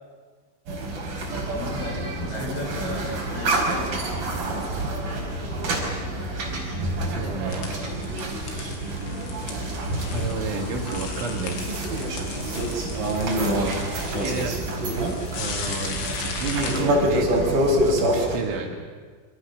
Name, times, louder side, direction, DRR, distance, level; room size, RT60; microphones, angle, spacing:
sound 1, 0.7-18.4, right 1 dB, 45° right, 6.2 m, -27 dB
voice 1, 0.9-1.3 6.4-6.5 7.0-7.7 10.1-11.8 12.9-13.0 13.3-14.6 15.3-18.8, right 4 dB, 70° right, 1 dB, 4.8 m, -32 dB
voice 2, 1.5-4.3 6.3-6.7 10.4-10.5 12.6-13.1, left 3 dB, 35° left, -1 dB, 8.4 m, -36 dB
sound 2, 7.5-16.8, left 5 dB, 75° left, 5.5 m, -37 dB
27.5 x 27.0 x 6.8 m, 1.5 s
omnidirectional pair, 5.9 m